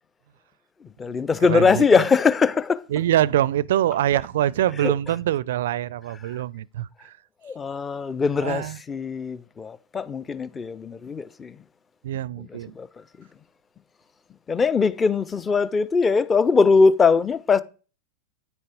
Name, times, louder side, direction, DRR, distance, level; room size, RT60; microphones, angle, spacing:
voice 1, 0.8-2.8 4.8-4.9 6.2-6.4 7.4-11.6 12.4-13.3 14.5-17.6, left 5 dB, 15° left, 0.7 m, -21 dB
voice 2, 1.5-1.8 2.9-7.1 8.4-8.8 12.0-12.8, right 12 dB, 55° right, 0.4 m, -24 dB
9.7 x 9.4 x 5.0 m
figure-of-eight pair, 90°, 0 cm